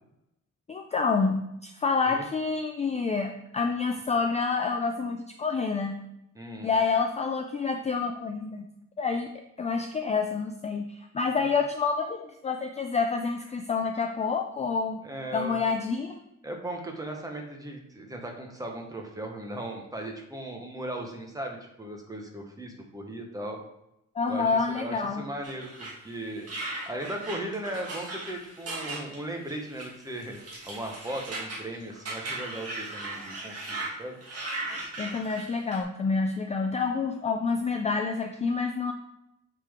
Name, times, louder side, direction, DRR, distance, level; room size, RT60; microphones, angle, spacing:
voice 1, 0.7-6.0 6.6-8.7 9.0-9.3 9.6-15.0 15.3-16.1 24.2-25.2 35.0-38.9, left 4 dB, 25° left, 5 dB, 0.3 m, -28 dB
voice 2, 6.3-6.7 11.4-11.6 15.0-15.7 16.4-23.6 24.3-26.5 26.9-30.4 30.6-34.2, right 1 dB, 10° right, 2 dB, 0.9 m, -37 dB
sound 1, 25.4-33.9 34.2-35.8, right 2 dB, 55° right, 1.5 m, -37 dB
8.3 x 3.8 x 3.5 m, 0.83 s
wide cardioid pair, 155°, 30 cm